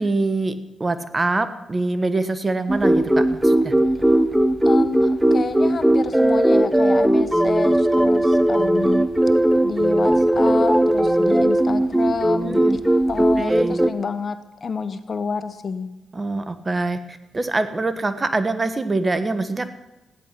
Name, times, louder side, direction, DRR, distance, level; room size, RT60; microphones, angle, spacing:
voice 1, 0.0-3.7 12.4-12.8 13.4-13.8 16.1-19.7, right 2 dB, 35° right, 11 dB, 1.3 m, -24 dB
sound 1, 2.7-13.9, right 1 dB, 5° right, 0.9 m, -18 dB
voice 2, 4.6-9.1 9.6-12.8 13.1-15.9, left 5 dB, 50° left, 11 dB, 1.1 m, -29 dB
15.0 x 10.5 x 5.9 m, 1.0 s
supercardioid pair, 55°, 0 cm